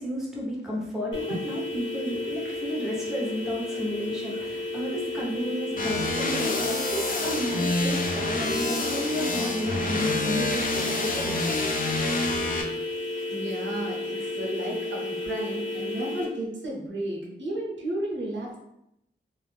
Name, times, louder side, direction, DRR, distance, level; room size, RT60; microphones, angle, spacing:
voice 1, 0.0-11.6, equal, ahead, -4 dB, 0.9 m, -32 dB
sound 1, 1.1-16.2, left 2 dB, 90° left, 0.7 m, -33 dB
sound 2, 5.8-12.6, left 2 dB, 50° left, 0.4 m, -28 dB
voice 2, 13.3-18.6, right 1 dB, 85° right, -2 dB, 0.7 m, -33 dB
2.4 x 2.0 x 3.3 m, 0.81 s
wide cardioid pair, 80°, 19 cm